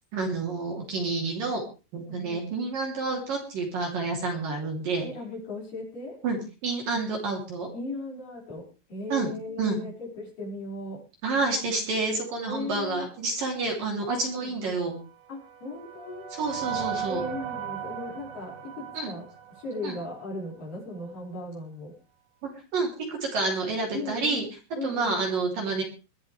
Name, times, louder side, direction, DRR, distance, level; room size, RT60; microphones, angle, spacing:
voice 1, 0.1-1.6 1.9-5.1 6.2-7.7 9.1-9.3 9.6-9.8 11.2-15.0 16.3-17.2 18.9-19.1 19.8-19.9 22.4-22.9 23.2-24.4 24.8-25.8, right 3 dB, 50° right, 1 dB, 4.5 m, -29 dB
voice 2, 1.9-2.5 5.0-6.2 7.7-11.0 12.4-13.1 14.3-14.5 15.3-16.3 17.1-19.3 19.6-21.9 23.9-25.3, left 1 dB, 45° left, -3 dB, 7.0 m, -37 dB
sound 1, 15.0-20.3, right 8 dB, 75° right, 4.3 m, -37 dB
22.5 x 13.5 x 3.4 m, 0.34 s
omnidirectional pair, 5.6 m